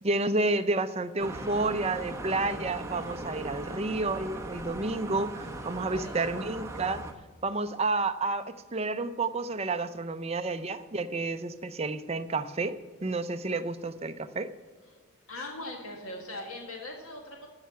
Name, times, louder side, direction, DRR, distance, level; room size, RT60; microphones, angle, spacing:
voice 1, 0.0-7.0 7.4-14.5, right 3 dB, 30° right, 10 dB, 0.5 m, -30 dB
sound 1, 1.2-7.1, right 2 dB, 15° right, 0.9 m, -39 dB
voice 2, 5.9-6.4 15.3-17.5, left 1 dB, 85° left, 1 dB, 1.7 m, -40 dB
15.0 x 5.7 x 7.0 m, 1.4 s
head